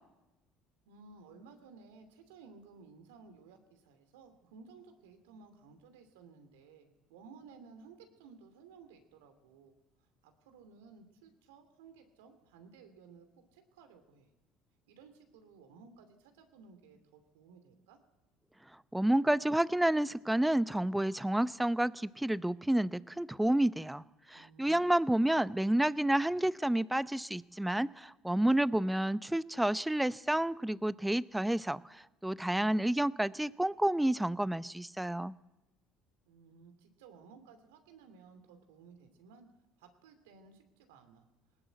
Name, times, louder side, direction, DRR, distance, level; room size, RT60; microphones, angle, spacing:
voice 1, 0.9-9.8 10.2-13.3 13.5-14.3 14.9-18.0 24.3-25.2 36.3-39.5 39.8-41.3, right 5 dB, 85° right, 7 dB, 2.8 m, -57 dB
voice 2, 18.9-24.0 24.3-35.3, right 1 dB, 5° right, 17 dB, 0.7 m, -30 dB
19.5 x 19.0 x 8.2 m, 1.0 s
hypercardioid pair, 75°, 0 cm